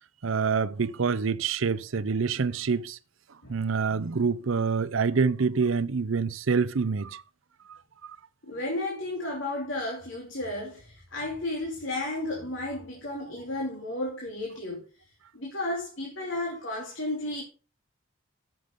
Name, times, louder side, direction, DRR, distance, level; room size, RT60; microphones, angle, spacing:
voice 1, 0.2-3.0 3.5-7.2, right 5 dB, 75° right, 0.6 m, -26 dB
voice 2, 8.4-14.9 15.3-17.4, left 1 dB, 65° left, 2.8 m, -33 dB
9.4 x 6.7 x 5.2 m
head